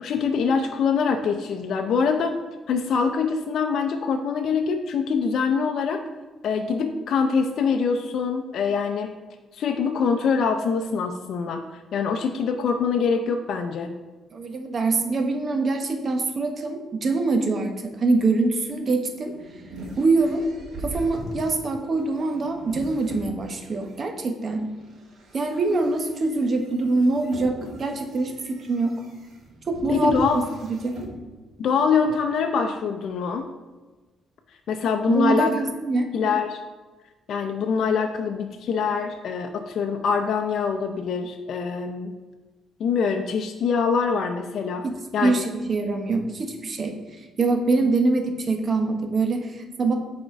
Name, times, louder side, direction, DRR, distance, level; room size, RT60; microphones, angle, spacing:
voice 1, 0.0-2.3 2.7-6.0 6.4-9.1 9.5-13.9 29.9-30.4 31.6-33.5 34.7-35.5 36.1-36.6 37.3-42.1 42.8-44.8 45.1-45.3, left 5 dB, 65° left, 4 dB, 0.5 m, -24 dB
voice 2, 14.3-19.3 20.0-20.4 20.8-24.7 25.3-29.0 29.7-30.2 30.6-31.0 35.1-36.1 44.8-44.9 45.2-50.0, right 3 dB, 45° right, 4 dB, 1.0 m, -24 dB
sound 1, 19.0-23.9 24.5-31.2, right 1 dB, 65° right, 2.2 m, -41 dB
7.1 x 4.3 x 4.6 m, 1.2 s
cardioid pair, 90°, 0 cm